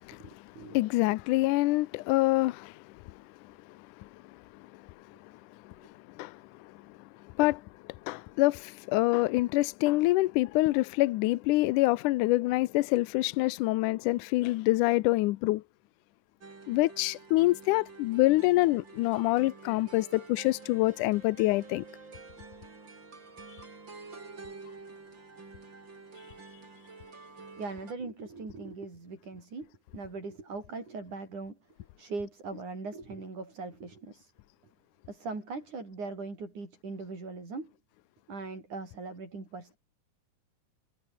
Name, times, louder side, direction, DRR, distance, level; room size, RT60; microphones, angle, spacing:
voice 1, 0.2-0.8 27.6-31.6 32.0-34.3 35.1-37.7 38.3-39.8, right 3 dB, 60° right, 8.9 m, -40 dB
voice 2, 0.7-2.7 6.2-6.4 7.4-7.6 8.1-15.6 16.7-21.8, left 19 dB, 80° left, 2.1 m, -26 dB
sound 1, 16.4-27.9, right 4 dB, 35° right, 4.6 m, -49 dB
omnidirectional pair, 3.9 m